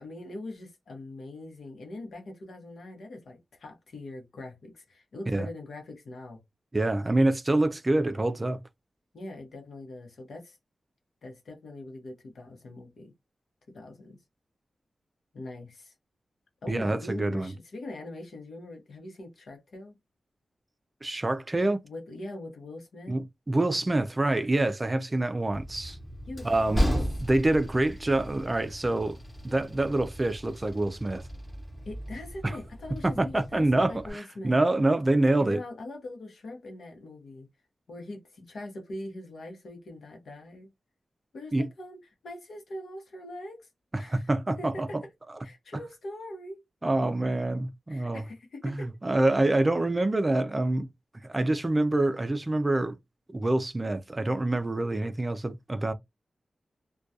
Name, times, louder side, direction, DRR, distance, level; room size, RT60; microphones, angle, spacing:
voice 1, 0.0-6.4 9.1-10.6 11.2-13.1 13.7-14.2 15.3-15.9 16.6-19.9 21.8-23.2 26.3-27.0 31.8-34.6 35.4-37.5 37.9-40.7 41.3-43.7 44.0-44.3 44.6-45.0 45.4-46.6 47.9-48.9, left 1 dB, 90° left, 0.8 m, -42 dB
voice 2, 6.7-8.6 16.7-17.5 21.0-21.8 23.1-26.0 26.4-26.9 27.3-29.2 29.4-31.2 32.4-32.6 33.0-35.6 41.5-41.7 44.1-44.9 46.8-48.2 48.6-50.9 51.2-53.0 53.3-55.9, right 2 dB, 25° right, 0.3 m, -26 dB
Train, 25.5-34.1, equal, 15° left, 0.8 m, -35 dB
2.3 x 2.2 x 2.6 m
wide cardioid pair, 135°, 0 cm